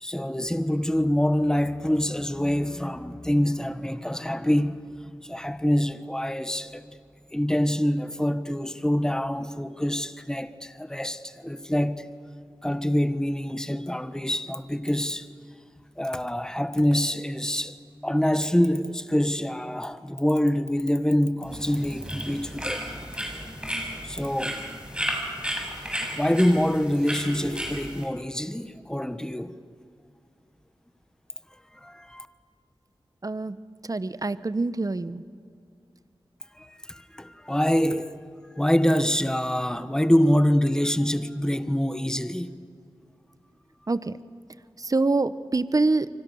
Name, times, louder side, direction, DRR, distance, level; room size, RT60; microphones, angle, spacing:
voice 1, 0.0-6.8 7.3-12.1 12.6-15.3 16.0-17.8 18.0-22.9 24.0-24.7 25.6-29.6 31.5-32.3 36.5-38.2 38.6-42.6, equal, 5° left, 1.3 m, -25 dB
sound 1, 21.5-28.0, equal, 10° right, 7.1 m, -33 dB
voice 2, 33.2-33.6 33.9-35.2 43.9-44.1 44.8-46.1, right 3 dB, 40° right, 1.0 m, -25 dB
28.0 x 25.0 x 7.1 m
cardioid pair, 45°, 9 cm